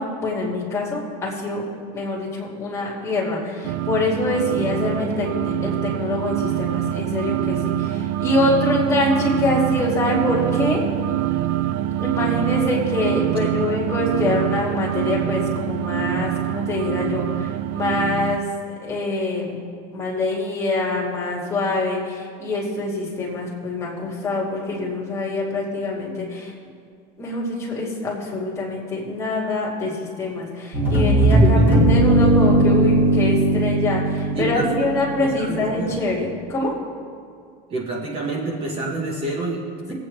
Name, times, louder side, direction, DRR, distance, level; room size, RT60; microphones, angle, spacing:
voice 1, 0.0-1.6 1.9-10.8 12.0-19.6 19.9-26.5 27.2-36.7, left 2 dB, 15° left, -4 dB, 2.2 m, -25 dB
sound 1, 3.6-18.4, right 13 dB, 50° right, 0.4 m, -25 dB
sound 2, 30.7-35.6, right 1 dB, 10° right, 1.7 m, -18 dB
voice 2, 34.3-36.0 37.7-39.9, right 2 dB, 30° right, -1 dB, 1.3 m, -28 dB
20.5 x 8.4 x 3.3 m, 2.3 s
cardioid pair, 165°, 20 cm